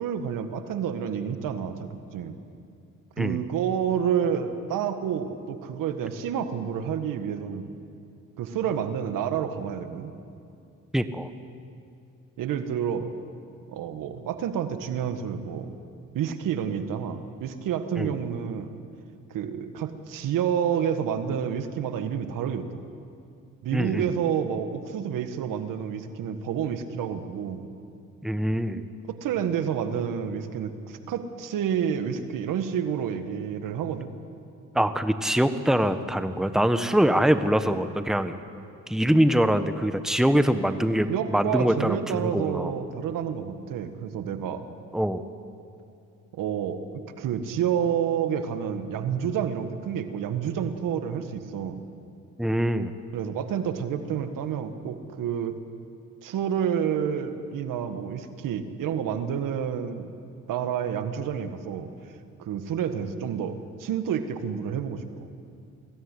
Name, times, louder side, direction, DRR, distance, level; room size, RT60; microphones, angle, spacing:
voice 1, 0.0-2.4 3.2-7.7 8.4-10.1 12.4-13.1 13.7-15.7 16.1-18.7 19.3-22.8 23.6-27.6 29.1-34.1 41.1-44.7 46.3-51.8 53.1-55.6 56.2-60.1 60.5-62.1 62.4-65.3, right 8 dB, 75° right, 9 dB, 1.6 m, -29 dB
voice 2, 10.9-11.3 18.0-18.1 23.7-24.1 28.2-28.8 34.7-38.3 38.9-42.7 44.9-45.2 52.4-52.9, equal, ahead, 9 dB, 1.4 m, -23 dB
22.5 x 16.5 x 9.9 m, 2.5 s
supercardioid pair, 60°, 33 cm